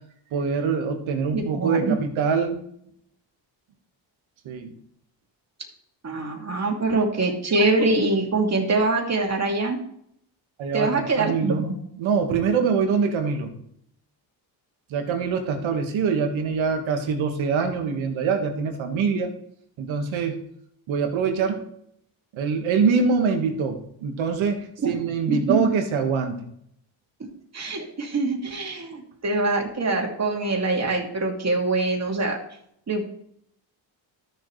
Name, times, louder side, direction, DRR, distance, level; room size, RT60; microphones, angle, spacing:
voice 1, 0.3-2.6 4.5-4.7 10.6-10.9 11.2-13.5 14.9-19.3 19.8-20.5 20.9-21.7 22.3-26.4, right 5 dB, 75° right, 4 dB, 1.9 m, -24 dB
voice 2, 1.3-2.0 6.0-9.8 10.7-11.7 24.8-25.0 25.3-25.7 27.2-27.3 27.5-32.4 32.9-33.0, right 3 dB, 35° right, 1 dB, 2.6 m, -24 dB
13.5 x 6.8 x 3.3 m, 0.71 s
cardioid pair, 85°, 47 cm